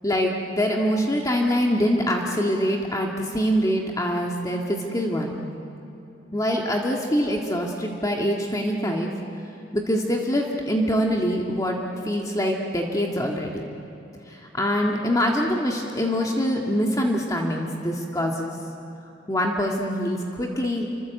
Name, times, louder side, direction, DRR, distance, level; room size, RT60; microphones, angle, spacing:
voice 1, 0.0-5.4 6.3-9.1 9.7-11.8 12.0-13.6 14.3-18.5 19.3-20.9, equal, 20° left, 0 dB, 1.8 m, -24 dB
28.5 x 25.0 x 8.2 m, 2.8 s
head